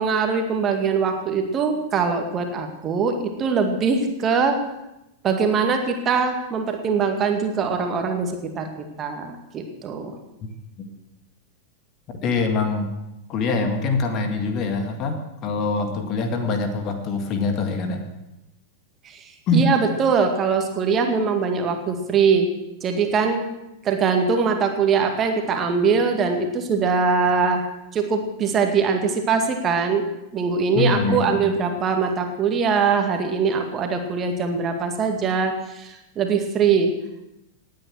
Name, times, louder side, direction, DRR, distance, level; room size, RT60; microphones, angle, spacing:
voice 1, 0.0-4.6 5.2-8.7 9.0-10.1 19.0-22.5 22.8-23.5 23.8-27.7 27.9-36.9, right 5 dB, 25° right, 5 dB, 2.0 m, -22 dB
voice 2, 12.1-12.9 13.3-18.0 19.5-19.7 30.8-31.5, left 3 dB, 35° left, 6 dB, 2.0 m, -24 dB
18.5 x 9.5 x 6.3 m, 0.91 s
figure-of-eight pair, 90°, 0 cm